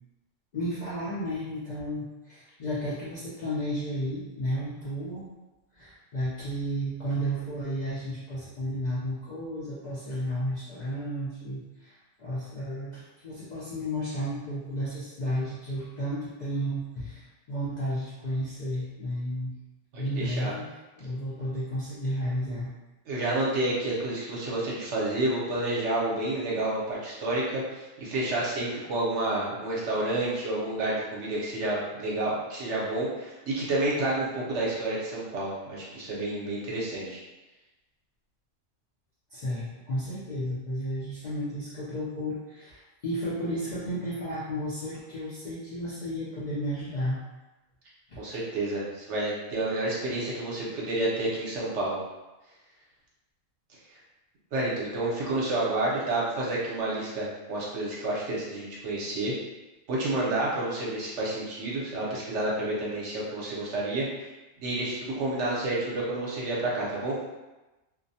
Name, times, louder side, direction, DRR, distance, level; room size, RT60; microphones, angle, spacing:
voice 1, 0.5-5.3 5.7-19.5 20.0-20.7 21.0-22.7 39.3-47.2 48.1-48.2, equal, 60° left, -9 dB, 0.4 m, -33 dB
voice 2, 19.9-20.5 23.1-37.2 48.2-52.0 54.5-59.3 59.9-64.3 64.6-67.2, right 2 dB, 70° right, -5 dB, 1.0 m, -29 dB
2.4 x 2.0 x 2.6 m, 1.1 s
omnidirectional pair, 1.3 m